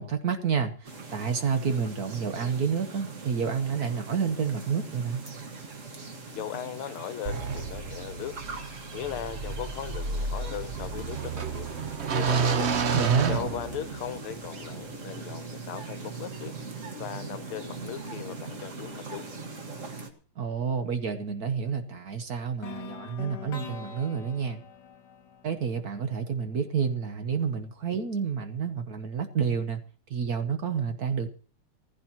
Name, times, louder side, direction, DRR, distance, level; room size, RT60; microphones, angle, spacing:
voice 1, 0.0-5.2 12.9-13.5 20.4-24.6 25.4-29.8 30.1-31.3, right 6 dB, 55° right, 8 dB, 1.3 m, -29 dB
sound 1, 0.8-20.1, right 4 dB, 40° right, 1.8 m, -41 dB
voice 2, 6.3-8.4 8.9-11.7 12.1-12.7 13.3-16.5 17.0-19.3, left 11 dB, 80° left, 11 dB, 1.7 m, -38 dB
sound 2, 7.3-14.2, right 5 dB, 80° right, 0.6 m, -30 dB
sound 3, 22.6-26.6, left 7 dB, 60° left, 1.3 m, -44 dB
19.5 x 15.0 x 2.9 m, 0.40 s
omnidirectional pair, 2.3 m